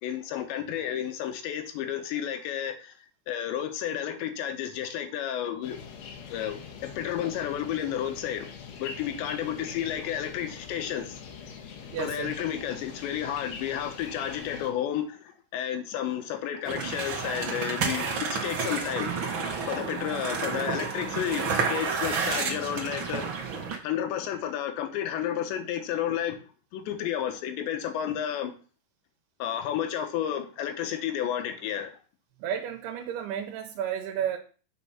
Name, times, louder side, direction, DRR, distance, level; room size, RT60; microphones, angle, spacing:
voice 1, 0.0-2.9 3.3-5.8 6.3-8.5 8.8-11.2 12.0-15.2 15.5-19.1 19.7-23.3 23.8-26.4 26.7-28.5 29.4-31.9, left 10 dB, 90° left, 3.4 m, -31 dB
sound 1, 5.6-14.7, left 6 dB, 70° left, 3.6 m, -43 dB
voice 2, 11.9-12.3 32.4-34.4, right 9 dB, 75° right, 2.8 m, -32 dB
sound 2, 16.6-23.8, right 5 dB, 90° right, 1.0 m, -30 dB
8.1 x 6.0 x 5.7 m
omnidirectional pair, 5.0 m